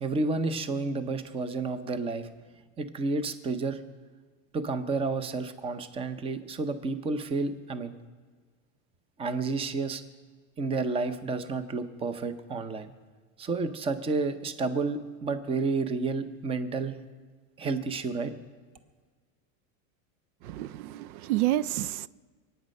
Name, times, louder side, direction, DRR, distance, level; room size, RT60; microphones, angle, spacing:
voice 1, 0.0-2.3 2.8-3.8 4.5-7.9 9.2-10.0 10.6-12.9 13.4-17.0 17.6-18.3, right 3 dB, 15° right, 0.6 m, -30 dB
voice 2, 20.4-22.1, right 15 dB, 80° right, 0.6 m, -29 dB
24.0 x 9.2 x 5.4 m
supercardioid pair, 150°, 43 cm